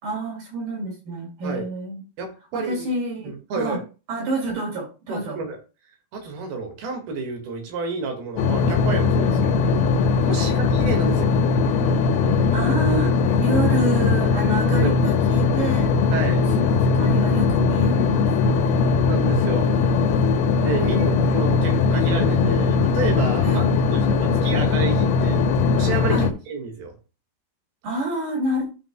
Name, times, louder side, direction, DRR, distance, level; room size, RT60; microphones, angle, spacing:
voice 1, 0.0-2.0 2.5-3.8 4.1-5.4 10.3-10.7 12.5-16.0 16.6-19.0 20.7-21.4 23.4-23.7 26.1-26.3 27.8-28.7, right 1 dB, 60° right, -1 dB, 5.9 m, -28 dB
voice 2, 2.2-2.9 3.2-3.8 5.1-5.6 6.1-9.8 10.3-11.4 14.7-15.0 16.1-16.4 19.0-19.7 20.6-25.4 25.7-26.9, right 3 dB, 85° right, 3 dB, 3.7 m, -30 dB
sound 1, 8.4-26.3, left 4 dB, 85° left, 2.9 m, -20 dB
12.5 x 5.8 x 2.2 m, 0.32 s
omnidirectional pair, 4.4 m